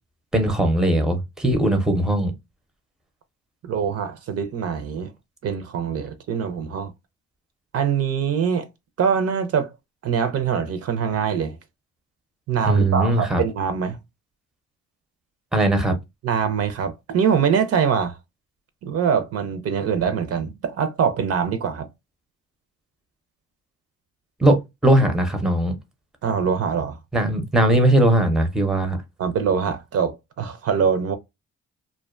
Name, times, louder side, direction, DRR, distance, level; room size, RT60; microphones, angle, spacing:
voice 1, 0.3-2.3 12.6-13.4 15.5-16.0 24.4-25.8 27.1-29.0, right 1 dB, ahead, 0.5 m, -19 dB
voice 2, 3.6-5.1 5.4-6.9 7.7-8.7 9.0-9.7 10.0-11.6 12.5-14.0 16.2-18.2 18.8-21.9 26.2-27.0 29.2-31.1, right 7 dB, 55° right, 0.5 m, -23 dB
2.4 x 2.2 x 2.3 m
cardioid pair, 90°, 30 cm